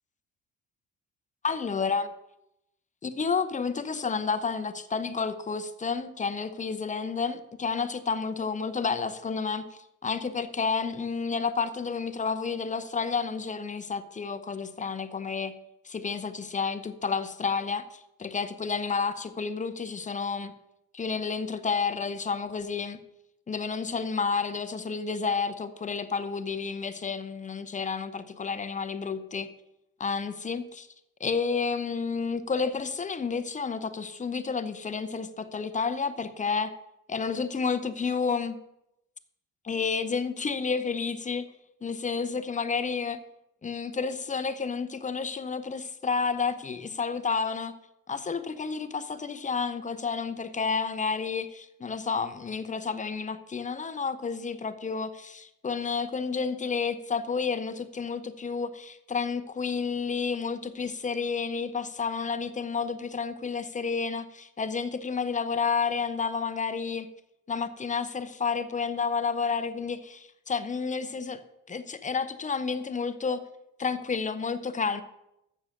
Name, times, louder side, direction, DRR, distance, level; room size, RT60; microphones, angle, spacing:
voice 1, 1.4-2.1 3.0-9.7 10.0-15.5 15.8-17.8 18.2-20.5 20.9-23.0 23.5-29.5 30.0-30.9 31.2-36.7 37.1-38.6 39.6-41.5 41.8-43.2 43.6-47.7 48.1-67.1 67.5-71.4 71.7-73.4 73.8-75.0, left 5 dB, 25° left, 11 dB, 0.7 m, -30 dB
7.1 x 6.4 x 6.4 m, 0.84 s
cardioid pair, 90°, 30 cm